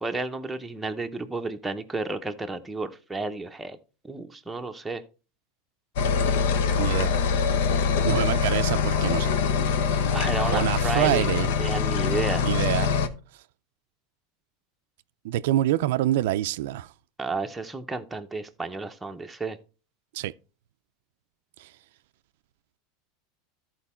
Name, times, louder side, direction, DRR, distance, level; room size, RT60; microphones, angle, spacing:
voice 1, 0.0-3.8 4.0-5.0 10.1-11.3 11.6-12.5 17.2-19.6, right 3 dB, 5° right, 0.7 m, -32 dB
sound 1, 6.0-13.1, left 6 dB, 75° left, 0.9 m, -24 dB
voice 2, 6.8-7.1 8.0-9.3 10.5-11.5 12.4-12.9 15.2-16.9 20.1-20.3 21.6-21.7, right 14 dB, 75° right, 0.4 m, -26 dB
13.5 x 4.5 x 4.3 m
supercardioid pair, 155°, 0 cm